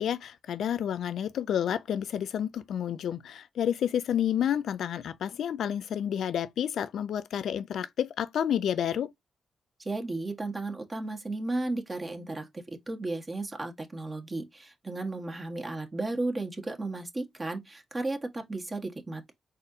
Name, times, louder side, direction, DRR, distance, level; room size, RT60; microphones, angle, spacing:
voice 1, 0.0-9.1, left 9 dB, 75° left, 0.4 m, -30 dB
voice 2, 9.8-19.3, right 2 dB, 35° right, 1.3 m, -34 dB
4.1 x 3.6 x 2.6 m
supercardioid pair, 45°, 0 cm